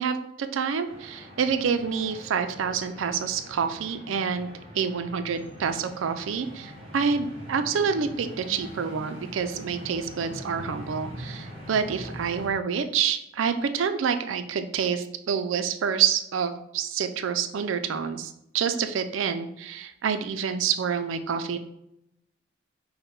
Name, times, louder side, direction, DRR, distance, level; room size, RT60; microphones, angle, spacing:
voice 1, 0.0-21.6, right 6 dB, 75° right, 9 dB, 0.4 m, -27 dB
sound 1, 0.8-12.5, equal, 30° right, 0.9 m, -43 dB
4.8 x 2.1 x 4.5 m, 0.80 s
head